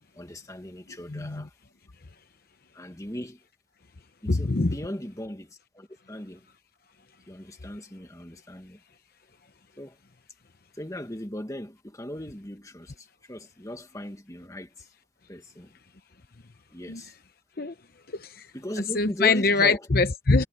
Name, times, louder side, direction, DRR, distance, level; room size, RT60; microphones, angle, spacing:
voice 1, 0.2-1.5 2.7-3.4 4.2-6.5 7.3-8.8 9.8-10.0 10.7-14.9 15.3-15.7 16.7-17.1 18.5-19.8, equal, 15° left, 1.8 m, -38 dB
voice 2, 1.1-1.5 4.3-4.8 16.9-17.0 17.6-17.7 18.1-18.5 18.9-20.4, left 3 dB, 50° left, 0.8 m, -23 dB
head